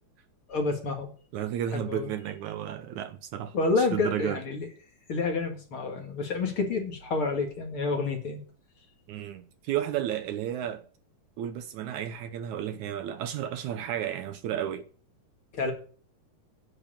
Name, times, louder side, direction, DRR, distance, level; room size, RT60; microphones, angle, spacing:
voice 1, 0.5-1.1 1.7-2.1 3.5-4.7 5.1-8.4 15.5-15.7, left 3 dB, 45° left, 2.4 m, -29 dB
voice 2, 1.3-4.4 9.1-10.8 11.4-14.9, right 10 dB, 75° right, 2.0 m, -33 dB
10.5 x 8.0 x 8.8 m
omnidirectional pair, 3.8 m